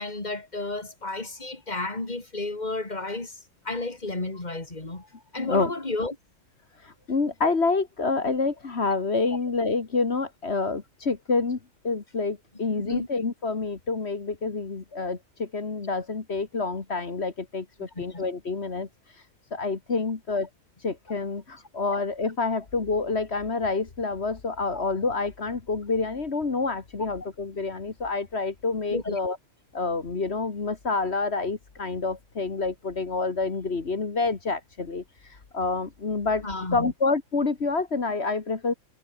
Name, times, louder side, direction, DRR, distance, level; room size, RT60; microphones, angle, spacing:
voice 1, 0.0-3.4 3.6-6.2 12.9-13.1 18.0-18.2 24.7-24.8 28.9-29.2 36.4-36.9, left 2 dB, 30° left, 3.1 m, -32 dB
voice 2, 5.4-5.7 6.8-11.6 11.8-18.9 19.5-20.5 20.8-29.4 29.7-35.0 35.5-36.4 36.7-38.7, left 4 dB, 50° left, 2.1 m, -28 dB
omnidirectional pair, 1.4 m